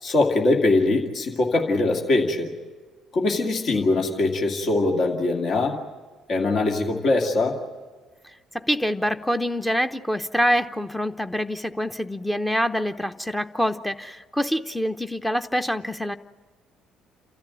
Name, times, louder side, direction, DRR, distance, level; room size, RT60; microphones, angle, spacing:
voice 1, 0.0-2.5 3.1-5.8 6.3-7.6, left 2 dB, 50° left, 2 dB, 2.3 m, -22 dB
voice 2, 8.5-16.2, equal, 5° left, 8 dB, 0.9 m, -25 dB
29.0 x 14.0 x 9.1 m, 1.4 s
figure-of-eight pair, 50°, 0 cm